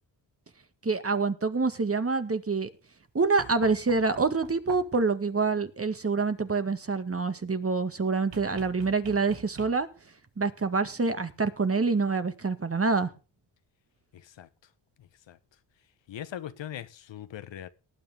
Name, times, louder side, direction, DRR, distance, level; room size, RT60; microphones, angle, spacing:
voice 1, 0.8-2.7 3.1-9.9 10.4-13.1, right 4 dB, 30° right, 1.9 m, -26 dB
sound 1, 3.4-5.1 8.3-10.1 11.6-11.7, right 8 dB, 70° right, 2.0 m, -45 dB
voice 2, 14.1-14.5 15.0-15.4 16.1-17.7, left 10 dB, 70° left, 1.3 m, -41 dB
19.0 x 8.8 x 3.6 m
cardioid pair, 65°, 46 cm